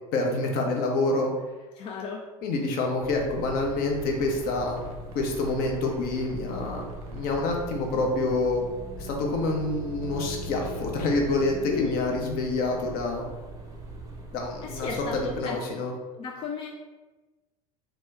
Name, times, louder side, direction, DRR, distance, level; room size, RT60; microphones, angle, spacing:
voice 1, 0.1-1.3 2.4-4.8 5.1-6.8 7.1-8.6 9.0-13.3 14.3-15.9, left 2 dB, 50° left, 1 dB, 0.7 m, -27 dB
voice 2, 1.8-2.2 11.7-12.0 14.6-15.6 16.1-16.7, left 5 dB, 30° left, 0 dB, 0.4 m, -33 dB
sound 1, 3.0-15.4, right 3 dB, 20° right, 0.6 m, -42 dB
sound 2, 3.2-12.0, left 1 dB, 75° right, 0.6 m, -41 dB
2.9 x 2.2 x 3.5 m, 1.2 s
hypercardioid pair, 75°, 19 cm